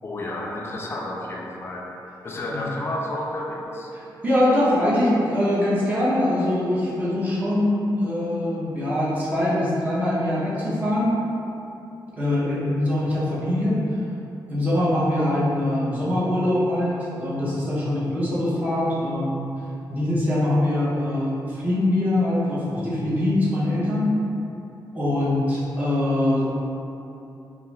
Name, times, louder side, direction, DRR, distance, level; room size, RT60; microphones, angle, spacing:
voice 1, 0.0-1.9 2.2-3.9, left 1 dB, 30° left, -2 dB, 0.3 m, -31 dB
voice 2, 4.2-11.2 12.2-13.8 14.5-19.5 19.9-24.2 24.9-26.5, left 1 dB, 20° right, -9 dB, 0.6 m, -23 dB
2.4 x 2.3 x 3.1 m, 2.9 s
wide cardioid pair, 165°, 8 cm